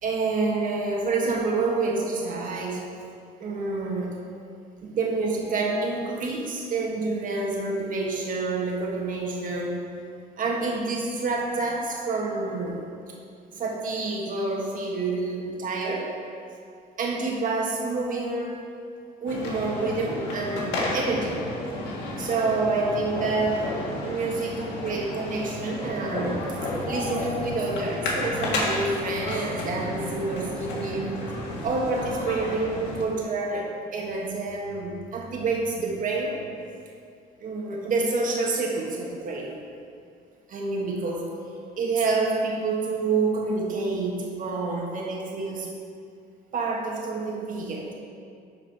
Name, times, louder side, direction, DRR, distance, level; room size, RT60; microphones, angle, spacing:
voice 1, 0.0-2.9 3.4-4.1 4.8-9.8 10.4-12.8 13.5-16.1 17.0-18.6 19.2-21.4 22.2-23.7 24.0-26.4 26.8-31.2 31.6-36.4 37.4-39.6 40.5-41.3 41.8-45.7 46.5-47.9, right 3 dB, 55° right, -1 dB, 1.6 m, -28 dB
sound 1, 19.3-33.0, left 1 dB, 85° left, 1.8 m, -32 dB
12.0 x 4.8 x 4.7 m, 2.4 s
cardioid pair, 110°, 17 cm